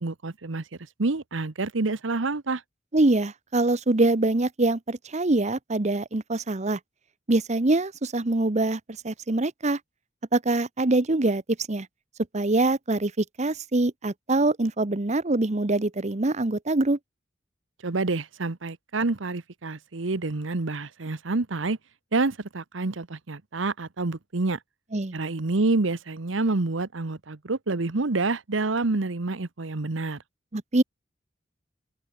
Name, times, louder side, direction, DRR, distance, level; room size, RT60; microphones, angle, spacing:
voice 1, 0.0-0.6 1.0-2.6 17.8-21.8 22.1-24.6 25.1-30.2, right 3 dB, 90° right, 1.1 m, -28 dB
voice 2, 2.9-6.8 7.3-8.8 9.0-9.8 10.3-11.4 11.7-11.9 12.3-17.0 24.9-25.1 30.5-30.8, right 2 dB, 40° right, 1.0 m, -24 dB
open air
head